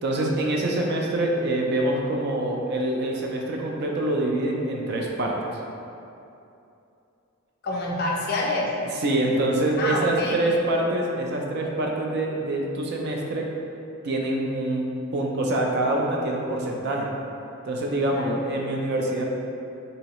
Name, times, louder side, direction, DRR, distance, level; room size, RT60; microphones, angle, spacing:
voice 1, 0.0-5.6 9.0-13.5 14.0-14.9 15.1-17.1 17.6-19.2, right 1 dB, 50° right, 0 dB, 0.4 m, -25 dB
voice 2, 7.6-8.7 9.8-10.5 18.1-18.4, left 2 dB, 45° left, -3 dB, 0.4 m, -27 dB
3.0 x 2.8 x 2.9 m, 2.7 s
head